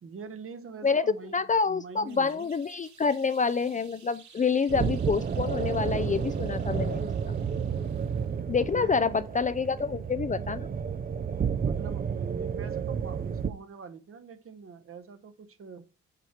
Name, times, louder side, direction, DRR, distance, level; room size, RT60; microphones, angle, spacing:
voice 1, 0.0-2.5 8.5-9.3 11.6-15.9, right 5 dB, 45° right, 1.0 m, -44 dB
voice 2, 0.8-7.4 8.5-10.7, left 5 dB, 25° left, 0.4 m, -27 dB
sound 1, 2.0-8.4, right 6 dB, 70° right, 2.6 m, -56 dB
sound 2, 4.7-13.5, right 7 dB, 30° right, 0.6 m, -31 dB
8.0 x 4.5 x 4.3 m
cardioid pair, 90°, 30 cm